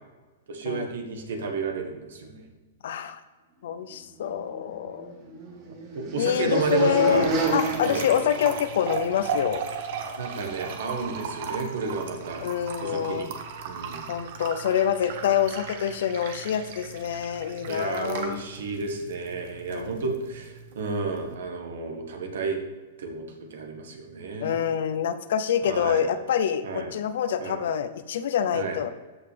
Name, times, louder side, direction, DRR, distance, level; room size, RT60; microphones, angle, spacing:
voice 1, 0.5-2.4 5.9-7.3 7.8-8.1 10.2-12.4 12.8-13.3 13.7-14.1 17.6-22.6 23.0-24.6 25.6-26.0 26.6-26.9 27.4-27.6 28.5-28.8, right 4 dB, 75° right, 3 dB, 1.8 m, -31 dB
voice 2, 2.8-3.2 3.6-5.2 6.2-7.2 7.5-9.6 12.4-13.3 14.1-18.4 19.7-20.0 24.4-28.9, left 9 dB, 70° left, 11 dB, 0.7 m, -26 dB
sound 1, 4.5-9.1, right 2 dB, 40° right, 3.3 m, -31 dB
sound 2, 6.4-21.3, right 6 dB, 60° right, 1.2 m, -37 dB
14.0 x 5.6 x 3.5 m, 1.3 s
hypercardioid pair, 140°, 0 cm